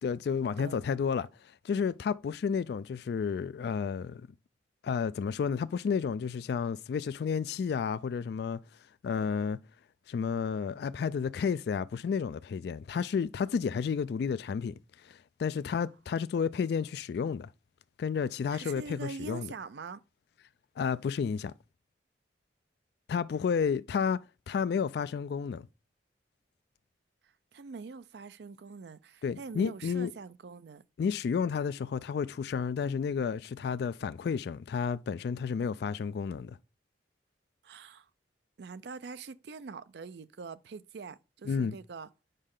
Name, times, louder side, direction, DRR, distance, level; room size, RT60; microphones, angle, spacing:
voice 1, 0.0-4.3 4.8-8.6 9.0-9.6 10.1-14.7 15.0-17.5 18.0-19.5 20.8-21.5 23.1-24.2 24.5-25.6 29.2-30.1 31.0-36.6 41.5-41.7, left 6 dB, 65° left, 0.3 m, -31 dB
voice 2, 18.5-20.0 27.5-30.8 37.6-38.1 38.6-42.1, right 5 dB, 65° right, 0.4 m, -44 dB
6.6 x 5.3 x 3.7 m
head